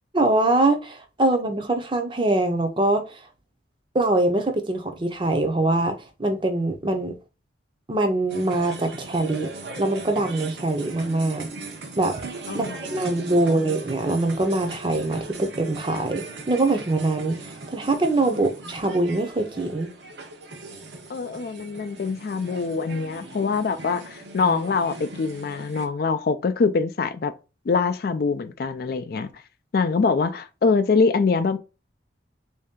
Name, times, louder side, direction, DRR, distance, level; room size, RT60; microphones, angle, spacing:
voice 1, 0.1-3.2 3.9-7.1 7.9-9.5 9.8-11.5 12.0-12.1 12.5-19.9, right 2 dB, 25° right, 0.6 m, -23 dB
sound 1, 8.3-25.9, right 2 dB, 70° right, 0.8 m, -39 dB
voice 2, 12.5-12.8 21.1-27.3 27.7-29.3 29.7-31.6, left 4 dB, 55° left, 0.4 m, -24 dB
3.2 x 2.7 x 3.5 m
head